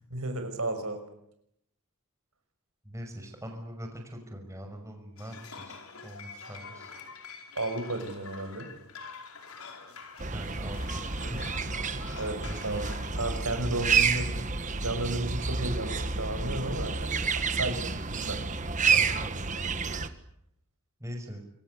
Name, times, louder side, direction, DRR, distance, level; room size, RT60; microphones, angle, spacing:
voice 1, 0.1-1.0 7.6-8.7 12.2-12.9 13.2-14.4 14.7-17.2 17.5-18.4, right 2 dB, 75° right, 7 dB, 5.9 m, -33 dB
voice 2, 2.8-5.8 6.0-6.9 10.3-11.6 12.4-13.3 18.9-19.3 21.0-21.4, equal, 15° right, 4 dB, 6.0 m, -42 dB
sound 1, 5.2-13.7, left 4 dB, 80° left, 5.1 m, -46 dB
sound 2, 10.2-20.1, right 5 dB, 35° right, 1.5 m, -30 dB
27.0 x 24.0 x 8.4 m, 0.76 s
head